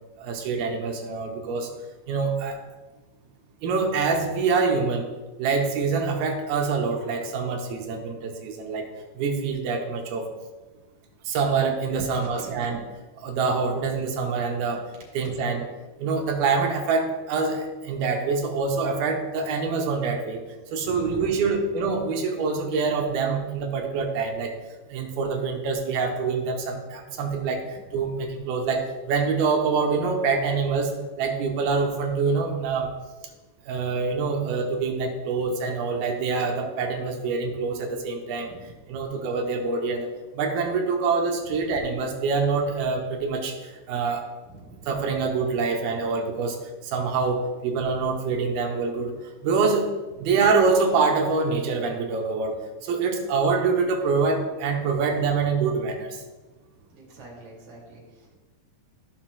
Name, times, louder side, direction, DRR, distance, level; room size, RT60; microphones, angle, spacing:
voice 1, 0.2-1.7 2.1-2.6 3.6-5.1 5.4-8.9 9.2-10.3 11.3-12.8 13.2-14.9 15.1-15.7 16.0-20.4 20.7-24.6 24.9-32.9 33.7-38.5 38.9-40.1 40.3-44.3 44.9-49.1 49.4-49.9 50.2-56.2, right 4 dB, 80° right, 2 dB, 2.5 m, -25 dB
voice 2, 20.8-21.7 38.5-38.7 41.4-41.7 44.5-44.9 50.1-50.3 56.9-58.4, right 3 dB, 40° right, -5 dB, 3.5 m, -43 dB
14.5 x 5.8 x 2.2 m, 1.2 s
omnidirectional pair, 4.6 m